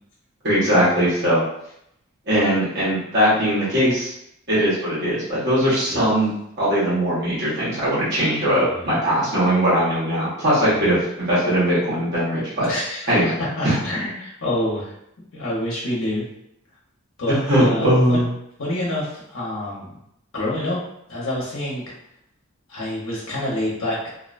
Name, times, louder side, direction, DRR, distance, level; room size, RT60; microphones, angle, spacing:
voice 1, 0.4-1.4 2.3-4.1 4.5-6.3 6.6-12.7 13.1-13.3 13.6-13.7 17.5-18.2, equal, 55° right, -9 dB, 1.1 m, -20 dB
voice 2, 8.5-9.0 10.6-11.0 12.7-14.9 15.3-16.2 17.2-18.2 18.6-19.9 20.3-20.8 21.1-21.8 22.7-24.0, left 1 dB, 70° left, -5 dB, 0.9 m, -27 dB
2.6 x 2.2 x 2.5 m, 0.76 s
head